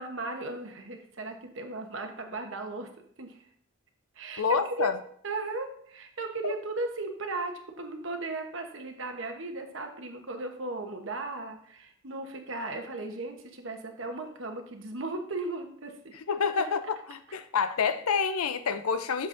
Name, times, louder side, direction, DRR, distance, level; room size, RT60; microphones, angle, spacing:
voice 1, 0.0-2.9 3.2-3.4 4.1-4.9 5.2-16.2 16.6-16.7, right 2 dB, 60° right, 4 dB, 1.0 m, -36 dB
voice 2, 4.4-5.0 6.4-6.5 16.3-16.8 17.1-19.3, left 5 dB, 90° left, 11 dB, 0.6 m, -28 dB
7.7 x 7.1 x 2.6 m, 0.62 s
head